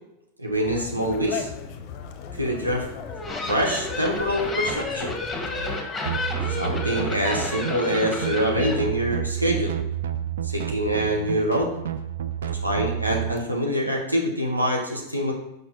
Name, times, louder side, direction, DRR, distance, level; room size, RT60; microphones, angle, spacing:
voice 1, 0.4-1.5 2.3-2.9 3.5-5.2 6.6-9.7 10.4-11.7 12.4-15.3, equal, 85° right, 0 dB, 1.0 m, -25 dB
Conversation, 0.5-5.8, left 7 dB, 40° left, 0.7 m, -37 dB
sound 1, 3.0-8.7, left 3 dB, 10° left, 1.3 m, -31 dB
sound 2, 6.1-13.4, right 10 dB, 60° right, 0.4 m, -30 dB
6.0 x 5.4 x 3.9 m, 0.87 s
figure-of-eight pair, 90°, 0 cm